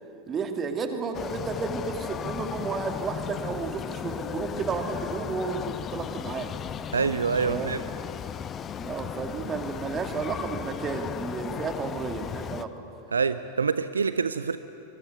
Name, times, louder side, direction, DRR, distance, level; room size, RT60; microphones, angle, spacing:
voice 1, 0.3-6.5 7.4-7.7 8.8-12.7, right 5 dB, 25° right, 6 dB, 2.4 m, -32 dB
sound 1, 1.1-12.7, left 8 dB, 25° left, 0.9 m, -35 dB
voice 2, 6.9-7.8 13.1-14.6, right 5 dB, 75° right, 13 dB, 0.6 m, -26 dB
23.5 x 22.5 x 9.6 m, 2.7 s
figure-of-eight pair, 90°, 0 cm